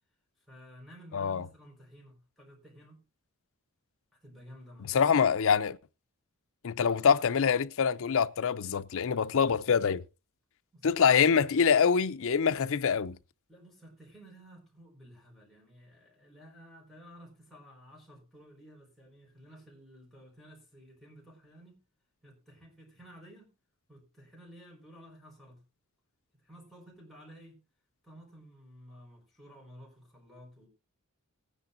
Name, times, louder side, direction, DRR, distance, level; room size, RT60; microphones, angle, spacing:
voice 1, 0.5-3.0 4.2-5.3 10.7-11.4 13.5-21.8 22.2-23.5 23.9-25.6 26.4-27.6 28.0-30.7, equal, ahead, 4.9 m, -53 dB
voice 2, 1.1-1.4 4.9-5.8 6.6-10.0 10.8-13.2, left 6 dB, 65° left, 0.5 m, -25 dB
18.5 x 10.0 x 2.6 m
head